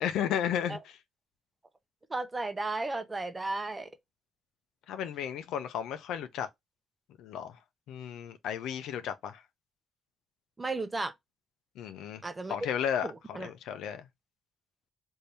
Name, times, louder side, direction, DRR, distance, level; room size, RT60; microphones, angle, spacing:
voice 1, 0.0-1.0 4.9-6.5 7.2-7.6 7.9-9.4 11.8-12.2 12.5-14.1, left 9 dB, 85° left, 0.5 m, -34 dB
voice 2, 2.1-3.9 10.6-11.1 12.2-12.6 13.0-13.5, right 3 dB, 20° right, 0.7 m, -34 dB
3.3 x 2.7 x 2.7 m
cardioid pair, 90°, 0 cm